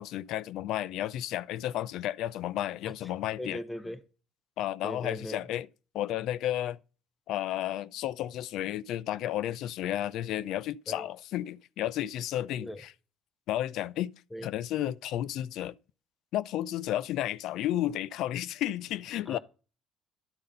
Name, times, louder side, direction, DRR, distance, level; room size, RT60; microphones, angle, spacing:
voice 1, 0.0-3.6 4.6-5.7 5.9-6.8 7.3-12.9 13.5-14.1 14.4-15.8 16.3-19.4, left 13 dB, 70° left, 0.4 m, -32 dB
voice 2, 3.4-4.0 4.8-5.5 10.9-11.1 12.6-12.8 14.3-14.5 19.3-19.4, left 1 dB, 15° left, 1.0 m, -39 dB
11.5 x 3.9 x 5.2 m
cardioid pair, 110°, 0 cm